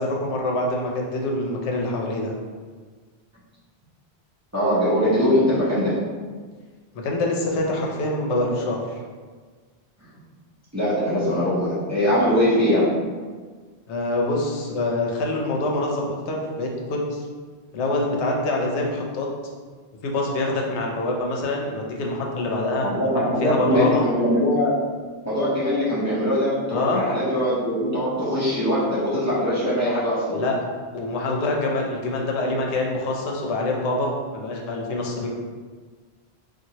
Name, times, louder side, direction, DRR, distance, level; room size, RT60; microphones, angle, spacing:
voice 1, 0.0-2.3 7.0-9.0 13.9-17.2 17.7-19.3 20.0-22.9 23.4-24.0 26.7-27.0 30.3-30.6 30.9-35.3, left 2 dB, 85° left, -1 dB, 0.9 m, -25 dB
voice 2, 4.5-6.0 10.7-12.9 22.8-24.7 25.2-30.4, equal, 20° right, -11 dB, 0.6 m, -21 dB
2.8 x 2.4 x 2.7 m, 1.5 s
omnidirectional pair, 1.1 m